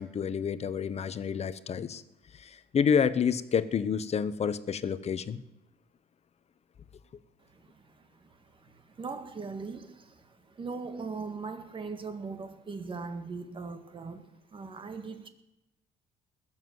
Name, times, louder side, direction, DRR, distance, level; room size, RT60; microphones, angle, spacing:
voice 1, 0.0-2.0 2.4-5.4, left 7 dB, 40° left, 0.9 m, -29 dB
voice 2, 7.5-15.3, right 4 dB, 30° right, 1.8 m, -40 dB
20.5 x 7.4 x 8.0 m
cardioid pair, 110°, 17 cm